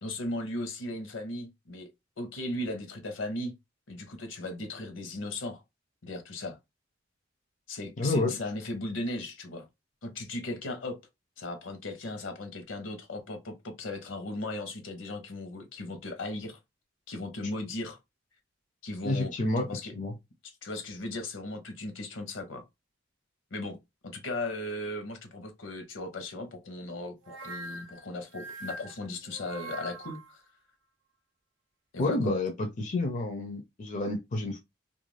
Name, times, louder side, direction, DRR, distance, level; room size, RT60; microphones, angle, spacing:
voice 1, 0.0-1.9 2.2-3.5 3.9-5.6 6.0-6.6 7.7-9.6 10.0-11.0 11.4-16.6 17.1-18.0 18.8-19.9 20.6-22.6 23.5-23.8 24.0-30.4 31.9-32.3, left 2 dB, 75° left, 0.8 m, -37 dB
voice 2, 8.0-8.4 19.0-19.7 19.9-20.1 32.0-34.6, left 2 dB, 40° left, 0.5 m, -29 dB
sound 1, 27.2-30.3, right 2 dB, 65° right, 0.5 m, -43 dB
2.4 x 2.2 x 3.1 m
head